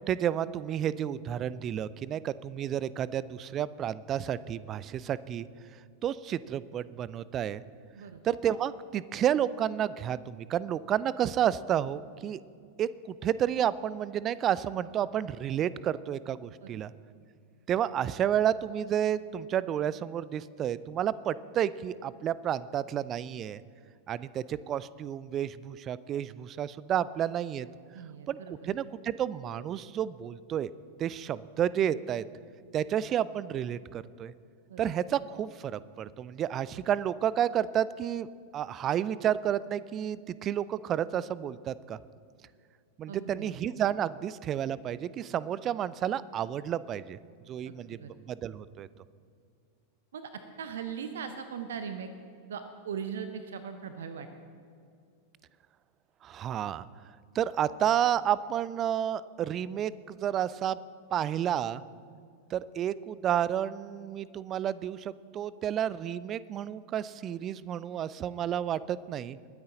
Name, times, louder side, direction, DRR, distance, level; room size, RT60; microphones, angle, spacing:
voice 1, 0.0-5.5 6.0-7.6 8.2-12.4 12.8-16.9 17.7-23.6 24.1-27.7 28.3-28.4 28.7-30.7 31.0-32.2 32.7-34.3 34.8-38.3 38.5-42.0 43.0-47.2 47.5-48.0 48.3-48.9 56.2-56.8 57.3-60.8 61.1-61.8 62.5-69.4, right 10 dB, 30° right, 18 dB, 0.4 m, -31 dB
voice 2, 27.9-28.7 34.7-34.9 43.1-43.6 47.7-48.1 50.1-52.1 52.5-54.3, right 7 dB, 60° right, 9 dB, 0.7 m, -40 dB
21.0 x 9.5 x 3.9 m, 2.3 s
figure-of-eight pair, 90°, 0 cm